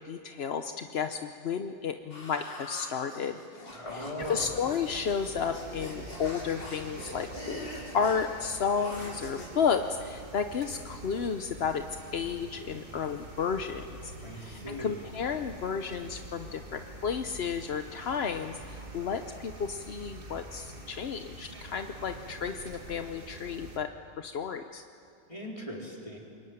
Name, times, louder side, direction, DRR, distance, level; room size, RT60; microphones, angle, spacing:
voice 1, 0.0-3.4 4.3-7.7 7.9-11.8 12.1-14.1 14.4-23.9 24.2-24.8, left 6 dB, 50° left, 7 dB, 0.8 m, -32 dB
sound 1, 2.1-9.5, left 1 dB, 75° left, 5.0 m, -44 dB
voice 2, 3.7-4.6 14.2-15.1 25.3-26.2, equal, 15° left, -2 dB, 4.4 m, -39 dB
sound 2, 4.2-23.8, right 2 dB, 30° right, 2.3 m, -46 dB
26.5 x 23.0 x 9.5 m, 2.5 s
omnidirectional pair, 1.9 m